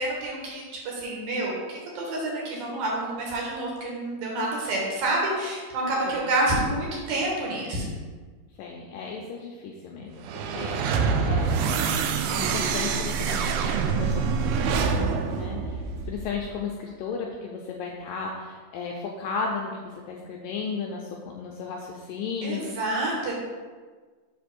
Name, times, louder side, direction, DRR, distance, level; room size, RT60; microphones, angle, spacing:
voice 1, 0.0-7.9 22.4-23.3, right 2 dB, 70° right, -3 dB, 3.1 m, -28 dB
voice 2, 8.6-11.8 12.3-22.7, left 5 dB, 85° left, -1 dB, 2.0 m, -35 dB
sound 1, 10.2-16.5, right 5 dB, 85° right, 2.0 m, -26 dB
7.1 x 3.4 x 6.0 m, 1.5 s
omnidirectional pair, 4.5 m